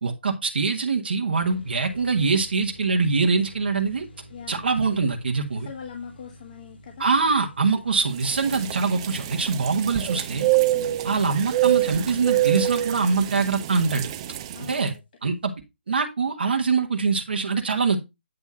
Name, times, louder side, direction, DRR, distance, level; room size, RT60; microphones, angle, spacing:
voice 1, 0.0-4.1 4.5-5.7 7.0-10.5 11.0-14.1 14.7-14.9 15.2-15.5 15.9-18.0, right 4 dB, 60° right, 1.8 m, -23 dB
sound 1, 1.4-13.8, equal, 70° left, 4.5 m, -50 dB
voice 2, 4.3-4.7 5.6-7.1 10.7-11.0 14.5-15.0, left 7 dB, 45° left, 1.8 m, -41 dB
sound 2, 8.2-14.8, right 14 dB, 30° right, 0.8 m, -26 dB
9.6 x 3.6 x 5.7 m
figure-of-eight pair, 145°, 6 cm